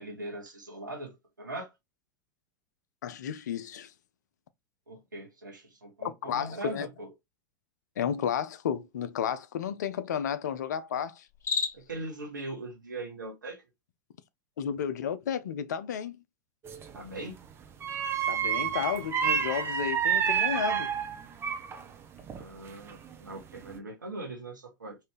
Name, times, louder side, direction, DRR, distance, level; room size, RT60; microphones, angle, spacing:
voice 1, 0.0-1.7 4.9-7.1 11.7-13.6 16.9-17.4 22.4-25.0, right 2 dB, 80° right, 1.0 m, -40 dB
voice 2, 3.0-3.9 6.2-6.9 8.0-11.3 14.6-16.2 18.3-20.9, left 8 dB, 65° left, 0.4 m, -32 dB
Cricket, 11.3-12.0, left 5 dB, 25° left, 0.8 m, -32 dB
sound 1, 16.6-17.0 17.8-21.8 22.2-23.1 23.5-23.8, right 8 dB, 25° right, 0.6 m, -29 dB
3.2 x 2.6 x 3.3 m
figure-of-eight pair, 90°, 10 cm